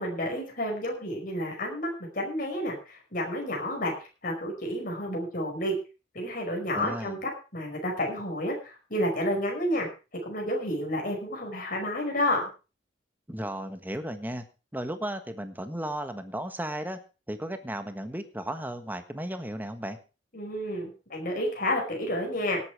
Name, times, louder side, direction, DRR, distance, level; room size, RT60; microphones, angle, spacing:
voice 1, 0.0-3.9 4.2-5.8 6.1-9.9 10.2-12.5 20.3-22.6, left 1 dB, 50° left, 0 dB, 5.2 m, -30 dB
voice 2, 6.7-7.2 13.3-14.4 14.7-17.0 17.3-20.0, right 1 dB, 10° right, 9 dB, 1.4 m, -35 dB
18.0 x 8.6 x 4.7 m, 0.33 s
head